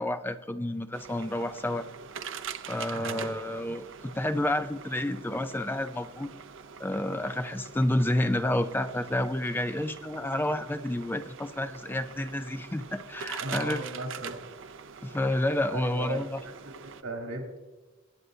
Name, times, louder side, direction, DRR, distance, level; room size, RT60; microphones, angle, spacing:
voice 1, 0.0-1.9 2.7-6.3 6.8-13.8 15.0-16.4, left 1 dB, 10° left, 10 dB, 0.4 m, -30 dB
sound 1, 0.9-17.0, right 7 dB, 65° right, 0.6 m, -44 dB
voice 2, 2.9-3.3 13.4-14.4 15.7-17.6, right 2 dB, 80° right, 0 dB, 3.0 m, -37 dB
22.0 x 9.6 x 2.7 m, 1.2 s
head